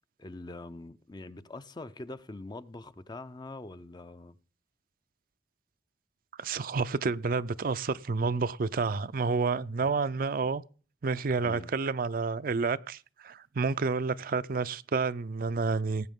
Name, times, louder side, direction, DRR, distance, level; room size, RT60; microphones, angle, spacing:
voice 1, 0.2-4.4 9.8-9.9 11.4-11.7, left 2 dB, 25° left, 0.5 m, -44 dB
voice 2, 6.4-10.6 11.0-16.1, right 4 dB, 50° right, 0.5 m, -29 dB
18.5 x 8.4 x 3.6 m
head